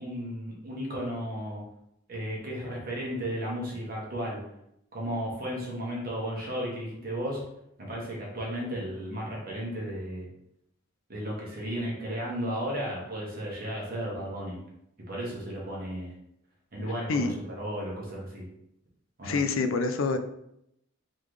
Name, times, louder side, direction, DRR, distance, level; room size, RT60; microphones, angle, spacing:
voice 1, 0.0-1.6 2.1-4.4 4.9-7.4 7.8-10.3 11.1-14.6 15.1-16.1 16.7-18.4 19.2-19.4, equal, 45° right, -3 dB, 1.3 m, -34 dB
voice 2, 16.8-17.4 19.2-20.2, left 4 dB, 70° left, 9 dB, 0.4 m, -27 dB
3.7 x 3.3 x 3.2 m, 0.78 s
head